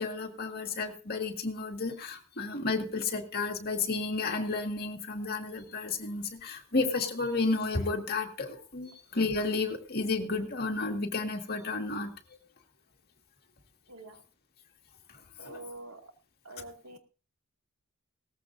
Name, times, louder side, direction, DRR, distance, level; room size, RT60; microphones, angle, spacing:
voice 1, 0.0-12.1 15.4-15.6, left 3 dB, 45° left, 3 dB, 2.0 m, -32 dB
voice 2, 13.9-14.2 15.4-16.1 16.4-17.0, right 2 dB, 90° right, 3 dB, 2.4 m, -46 dB
18.0 x 14.5 x 2.7 m, 0.35 s
head